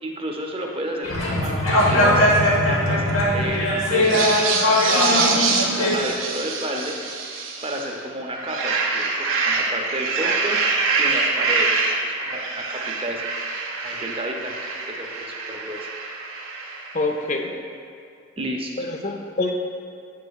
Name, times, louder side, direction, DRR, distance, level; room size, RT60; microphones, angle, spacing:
voice 1, 0.0-2.2 2.7-4.3 4.6-7.0 7.6-10.6 11.0-13.3 13.8-15.9 17.5-17.6 18.4-18.7, right 1 dB, 25° right, 1 dB, 0.6 m, -32 dB
sound 1, 1.0-5.9, left 1 dB, 70° left, 1.0 m, -20 dB
sound 2, 4.0-7.9 8.3-17.0, right 4 dB, 70° right, 0.6 m, -25 dB
voice 2, 16.9-17.5 18.8-19.5, left 2 dB, 35° left, 3 dB, 0.5 m, -25 dB
8.1 x 6.5 x 2.3 m, 2.5 s
head